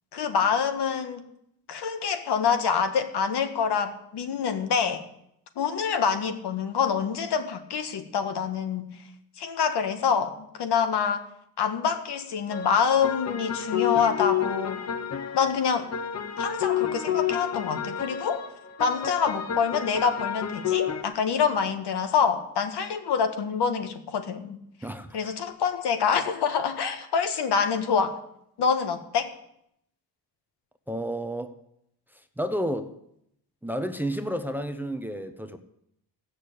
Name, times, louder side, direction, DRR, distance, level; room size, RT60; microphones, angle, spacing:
voice 1, 0.1-1.2 1.7-5.0 5.5-8.9 9.4-11.2 11.6-14.8 15.3-15.9 16.4-18.4 18.8-24.6 25.1-28.2 28.6-29.3, left 6 dB, 75° left, 1.7 m, -26 dB
sound 1, 12.5-21.0, left 9 dB, 40° left, 1.0 m, -30 dB
voice 2, 24.8-25.2 30.9-31.5 32.1-32.9 33.6-35.6, equal, 5° right, 0.8 m, -31 dB
15.5 x 6.6 x 8.6 m
cardioid pair, 140°, 40 cm